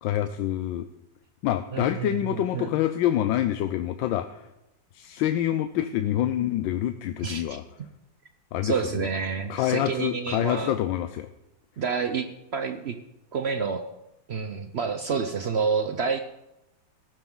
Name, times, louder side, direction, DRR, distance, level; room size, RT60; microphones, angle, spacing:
voice 1, 0.0-0.8 1.4-4.4 4.9-7.6 8.5-8.7 9.0-9.1 9.5-11.3, left 12 dB, 90° left, 9 dB, 1.4 m, -26 dB
voice 2, 1.7-2.7 7.2-7.6 8.6-10.7 11.8-12.3 12.5-13.0 13.3-13.9 14.3-16.2, right 5 dB, 80° right, 8 dB, 0.5 m, -28 dB
15.5 x 12.0 x 3.8 m, 0.92 s
omnidirectional pair, 2.0 m